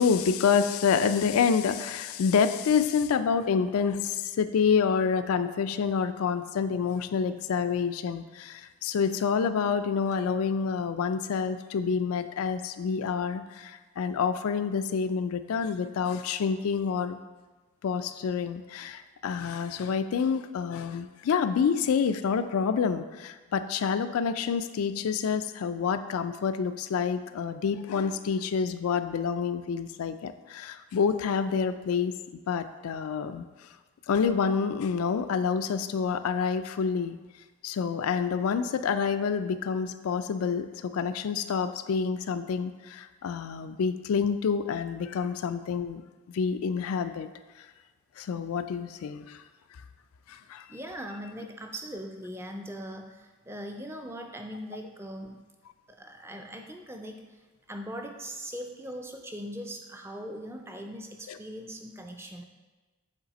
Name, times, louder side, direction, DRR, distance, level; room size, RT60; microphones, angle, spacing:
voice 1, 0.0-17.2 17.8-32.2 32.5-33.5 34.1-37.2 37.6-46.0 46.3-47.3 48.2-49.4 50.3-50.7 61.3-61.4, left 6 dB, 85° left, 10 dB, 0.3 m, -28 dB
voice 2, 50.7-55.4 55.9-57.3 57.7-62.4, equal, 10° right, 4 dB, 0.4 m, -40 dB
7.4 x 3.4 x 4.1 m, 1.3 s
head